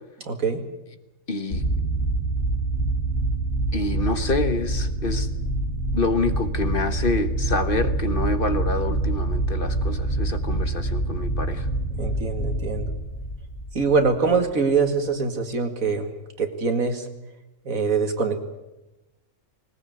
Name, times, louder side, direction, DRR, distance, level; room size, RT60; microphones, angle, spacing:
voice 1, 0.2-0.6 12.0-12.9 13.7-16.1 16.4-17.1 17.7-18.4, right 4 dB, 90° right, 6 dB, 2.5 m, -23 dB
voice 2, 1.3-1.6 3.7-5.3 5.9-11.7, left 3 dB, 45° left, 10 dB, 1.4 m, -27 dB
sound 1, 1.5-14.5, right 2 dB, 85° left, 3.3 m, -26 dB
19.5 x 19.0 x 9.4 m, 1.0 s
omnidirectional pair, 1.4 m